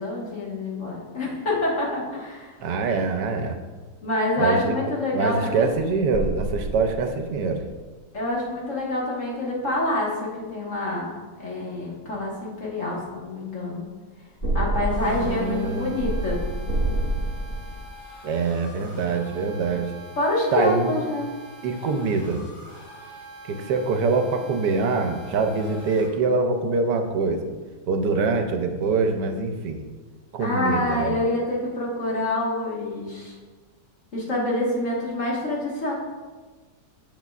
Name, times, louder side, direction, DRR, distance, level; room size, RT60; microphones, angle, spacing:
voice 1, 0.0-2.6 4.0-5.7 8.1-11.1 11.4-13.9 14.5-16.4 20.2-21.3 30.4-33.3 34.1-35.9, left 1 dB, 45° left, -4 dB, 1.8 m, -26 dB
voice 2, 2.6-3.6 4.4-4.7 5.1-7.6 15.0-15.9 18.2-19.9 20.5-20.9 21.6-22.4 23.5-27.4 27.9-29.8 30.3-31.2, right 4 dB, 75° right, 5 dB, 1.3 m, -24 dB
sound 1, 5.8-7.9 14.4-17.8, right 1 dB, 25° left, 1.4 m, -28 dB
sound 2, 14.9-26.1, left 1 dB, 65° left, 2.2 m, -45 dB
8.0 x 7.0 x 2.4 m, 1.4 s
omnidirectional pair, 1.9 m